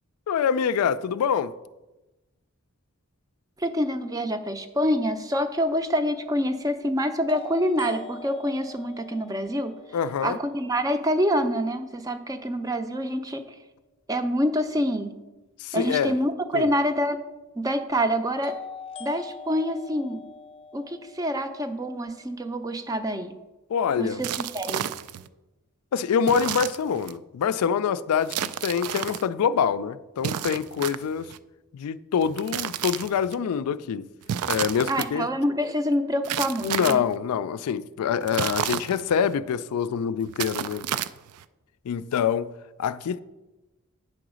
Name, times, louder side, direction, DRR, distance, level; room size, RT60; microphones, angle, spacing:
voice 1, 0.3-1.5 9.9-10.4 15.6-16.1 16.5-16.7 23.7-24.2 25.9-31.3 31.7-34.1 34.5-35.3 36.6-40.8 41.9-42.5 42.8-43.2, left 7 dB, 90° left, 0.3 m, -25 dB
voice 2, 3.6-9.8 10.2-13.6 14.1-15.1 15.7-17.2 17.6-18.6 19.0-20.2 20.7-23.3 24.0-24.9 34.9-37.0, equal, 15° right, 0.4 m, -26 dB
sound 1, 5.3-5.4 7.3-11.2 18.4-22.4, left 5 dB, 25° left, 0.7 m, -44 dB
sound 2, 24.2-25.3 26.2-27.2 28.3-29.2 30.2-31.4 32.2-33.3 34.2-35.1 36.2-37.1 38.2-39.3 40.2-41.4, right 10 dB, 80° right, 0.3 m, -31 dB
8.7 x 3.9 x 6.2 m
head